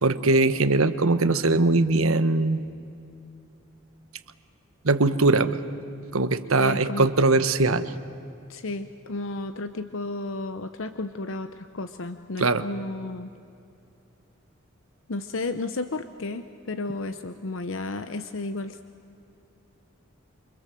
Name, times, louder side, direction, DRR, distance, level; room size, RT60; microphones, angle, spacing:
voice 1, 0.0-2.6 4.8-5.6 6.1-7.9 12.4-12.6, right 2 dB, 80° right, 11 dB, 1.2 m, -21 dB
voice 2, 6.6-7.1 8.5-13.3 15.1-18.8, left 2 dB, 65° left, 10 dB, 0.8 m, -33 dB
29.0 x 24.5 x 7.7 m, 2.6 s
head